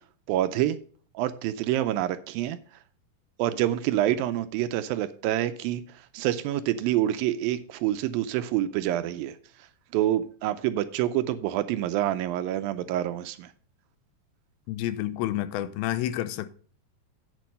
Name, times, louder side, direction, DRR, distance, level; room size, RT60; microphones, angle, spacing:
voice 1, 0.3-0.8 1.2-2.6 3.4-9.4 9.9-13.5, right 13 dB, 80° right, 2.2 m, -27 dB
voice 2, 14.7-16.5, left 13 dB, 80° left, 2.4 m, -29 dB
8.5 x 7.5 x 5.3 m
omnidirectional pair, 4.4 m